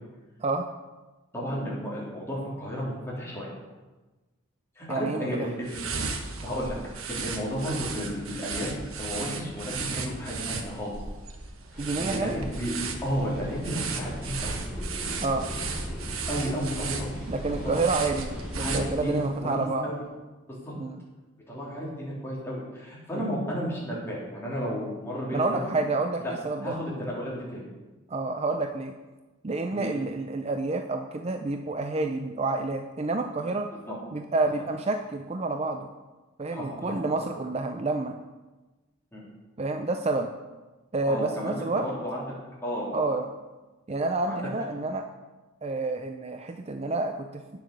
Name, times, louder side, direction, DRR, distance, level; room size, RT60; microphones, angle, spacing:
voice 1, 1.3-3.5 4.7-5.9 6.4-6.8 7.1-8.7 9.0-10.9 11.7-12.7 13.0-14.5 16.3-17.8 18.6-20.0 20.6-20.7 21.5-25.7 26.2-26.3 26.6-27.7 29.7-29.9 33.9-34.0 36.5-36.9 39.1-39.3 41.1-42.2 42.6-43.1 44.3-44.4, equal, 10° left, -6 dB, 3.5 m, -33 dB
voice 2, 4.9-5.5 11.8-12.4 15.2-15.5 17.3-19.9 20.8-21.0 23.1-23.3 25.3-26.8 28.1-28.9 29.4-33.7 34.1-35.9 36.4-38.1 39.6-40.3 40.9-41.9 42.9-43.3 43.9-45.1 45.6-47.6, right 3 dB, 30° right, 6 dB, 0.5 m, -29 dB
sound 1, 5.6-19.3, right 4 dB, 85° right, 1.3 m, -36 dB
sound 2, 11.7-18.9, equal, 5° right, 3.7 m, -38 dB
9.6 x 7.4 x 6.6 m, 1.2 s
head